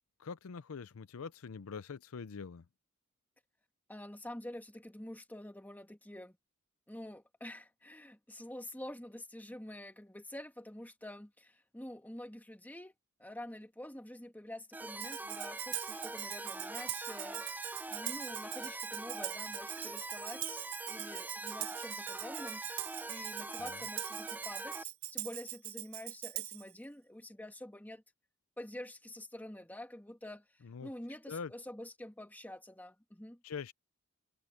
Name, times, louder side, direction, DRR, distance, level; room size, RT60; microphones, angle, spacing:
voice 1, 0.2-2.6 23.6-23.8 30.6-30.9 31.3-31.5 33.4-33.7, left 5 dB, 75° left, 0.5 m, -44 dB
voice 2, 3.9-6.4 6.9-12.9 13.2-17.6 17.9-28.0 28.6-30.4 30.8-33.4, left 1 dB, 10° left, 1.7 m, -47 dB
sound 1, 14.7-24.8, right 2 dB, 10° right, 0.4 m, -43 dB
Tambourine, 15.0-26.7, right 17 dB, 65° right, 0.8 m, -42 dB
open air
head